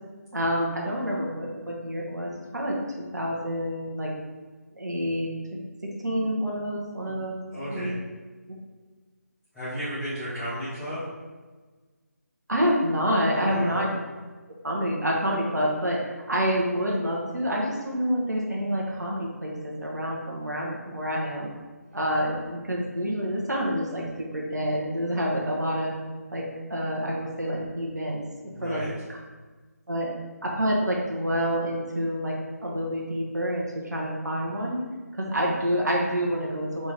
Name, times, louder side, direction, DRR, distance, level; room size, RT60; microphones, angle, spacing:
voice 1, 0.3-4.1 4.7-5.3 6.0-7.3 7.7-7.9 8.5-8.6 12.5-13.9 14.6-16.0 16.3-21.5 21.9-25.9 26.3-26.4 26.7-28.2 28.6-28.8 29.1-29.2 29.9-30.1 30.4-32.3 32.6-34.8 35.2-36.9, equal, 85° right, -2 dB, 1.1 m, -27 dB
voice 2, 7.5-7.9 9.5-11.1 13.3-13.8 28.5-28.9, equal, ahead, -19 dB, 1.2 m, -33 dB
4.2 x 3.5 x 3.3 m, 1.3 s
figure-of-eight pair, 160°, 9 cm